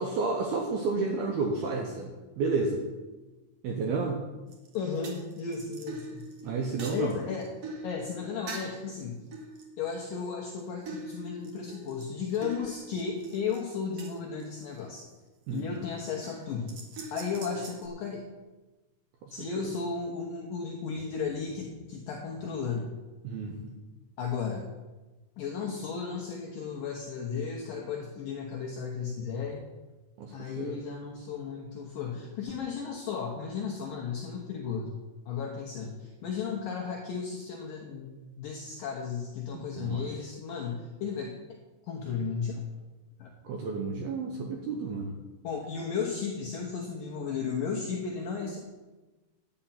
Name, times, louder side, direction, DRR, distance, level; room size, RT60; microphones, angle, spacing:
voice 1, 0.0-2.8 3.6-4.2 6.4-7.2 15.5-15.7 19.2-19.5 23.2-23.7 30.2-30.8 39.5-40.0 43.4-45.1, right 4 dB, 75° right, 2 dB, 2.3 m, -31 dB
sound 1, 4.5-4.8 5.0-8.9 9.3-10.6 10.9-14.9 15.5-15.8 16.2-17.9, right 2 dB, 60° right, 1.6 m, -43 dB
voice 2, 4.7-6.3 6.9-7.5 7.8-9.2 9.8-15.0 15.5-16.8 17.1-18.2 19.3-22.9 24.2-24.7 25.4-29.7 30.3-35.0 35.3-41.3 41.8-42.6 43.2-43.3 45.4-48.6, left 6 dB, 75° left, -1 dB, 2.0 m, -34 dB
11.5 x 9.3 x 5.8 m, 1.2 s
omnidirectional pair, 5.7 m